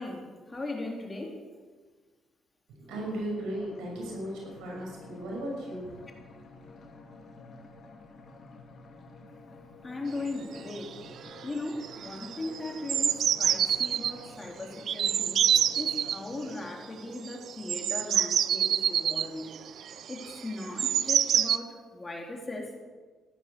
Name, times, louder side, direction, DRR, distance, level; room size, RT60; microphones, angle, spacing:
voice 1, 0.0-1.4 9.8-11.0 11.4-15.4 15.7-19.5 20.1-22.7, left 2 dB, 25° left, 1 dB, 3.6 m, -38 dB
voice 2, 2.7-5.9, right 1 dB, 90° right, -1 dB, 5.8 m, -36 dB
sound 1, 2.9-16.6, left 3 dB, 55° left, 2.8 m, -50 dB
sound 2, 10.3-10.4 10.5-10.9 11.2-11.6 11.8-14.1 14.9-16.2 17.3-21.6, right 9 dB, 65° right, 0.5 m, -27 dB
16.0 x 11.5 x 7.0 m, 1.4 s
cardioid pair, 90°, 0 cm